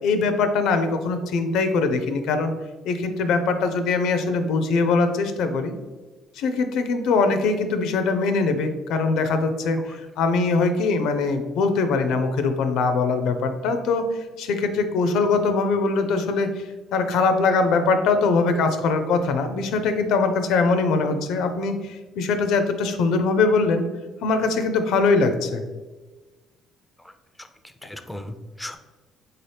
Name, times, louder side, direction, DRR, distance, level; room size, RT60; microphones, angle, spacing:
voice 1, 0.0-2.5 2.8-5.7 6.4-14.1 14.4-16.5 16.9-23.9 24.2-25.6, left 4 dB, 80° left, 8 dB, 0.4 m, -22 dB
voice 2, 27.4-28.8, left 1 dB, 5° left, 8 dB, 0.4 m, -38 dB
3.9 x 2.8 x 3.2 m, 1.2 s
cardioid pair, 95°, 0 cm